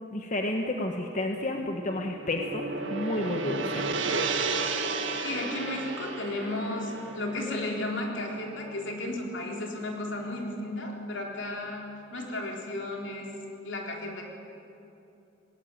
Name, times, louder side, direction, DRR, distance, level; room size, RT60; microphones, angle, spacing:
voice 1, 0.1-2.6 2.9-3.8, left 1 dB, 40° left, 3 dB, 1.2 m, -31 dB
Gong, 1.6-9.9, right 3 dB, 75° right, 1.8 m, -33 dB
voice 2, 5.2-13.3 13.6-14.3, left 2 dB, 70° left, 0 dB, 3.9 m, -34 dB
19.5 x 19.0 x 9.1 m, 2.8 s
head